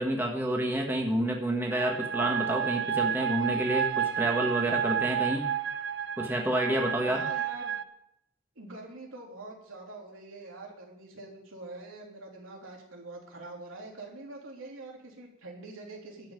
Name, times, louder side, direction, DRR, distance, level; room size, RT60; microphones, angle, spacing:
voice 1, 0.0-5.5 6.2-7.2, right 1 dB, 10° right, 1 dB, 1.5 m, -29 dB
sound 1, 1.7-7.8, right 8 dB, 55° right, 0.6 m, -31 dB
voice 2, 7.1-7.8 8.6-16.3, right 2 dB, 90° right, -1 dB, 3.5 m, -45 dB
13.0 x 5.8 x 9.4 m, 0.77 s
head